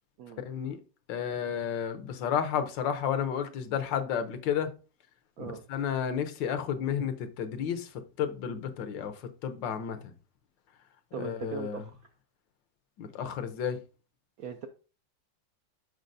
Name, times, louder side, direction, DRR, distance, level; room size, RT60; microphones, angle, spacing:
voice 1, 0.5-0.8 1.1-4.7 5.4-9.1 9.4-10.1 11.2-11.8 13.0-13.8, left 8 dB, 75° left, 1.4 m, -32 dB
voice 2, 11.1-12.1 14.4-14.7, right 6 dB, 75° right, 0.8 m, -39 dB
6.4 x 6.0 x 2.6 m
omnidirectional pair, 2.0 m